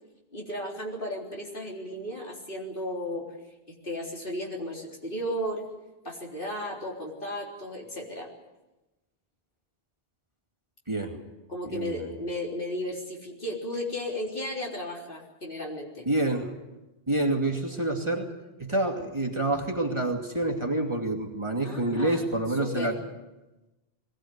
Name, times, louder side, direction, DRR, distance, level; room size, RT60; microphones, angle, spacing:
voice 1, 0.3-3.3 3.8-5.7 6.0-8.3 11.1-11.2 11.5-16.1 21.6-22.2 22.6-23.0, left 1 dB, 60° left, -1 dB, 4.1 m, -34 dB
voice 2, 11.7-12.1 16.1-16.5 17.1-18.3 18.6-23.0, right 2 dB, 30° right, 1 dB, 2.6 m, -27 dB
22.0 x 17.0 x 9.6 m, 1.0 s
omnidirectional pair, 1.0 m